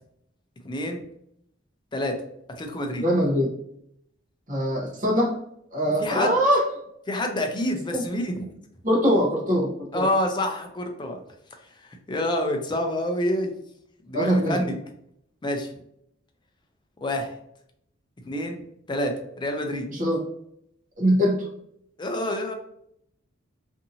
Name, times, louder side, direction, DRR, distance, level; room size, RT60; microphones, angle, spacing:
voice 1, 0.6-1.0 1.9-2.1 2.6-3.0 6.0-6.3 7.1-8.5 9.9-11.2 12.1-13.5 14.0-14.7 15.4-15.7 17.0-17.3 18.2-18.6 18.9-19.9 22.0-22.5, left 1 dB, 25° left, 4 dB, 0.4 m, -27 dB
voice 2, 3.0-3.5 4.5-5.4 5.7-6.7 7.9-8.0 8.8-10.1 14.1-14.7 19.9-20.2 21.0-21.5, equal, 40° right, -3 dB, 0.9 m, -22 dB
2.7 x 2.5 x 2.7 m, 0.74 s
head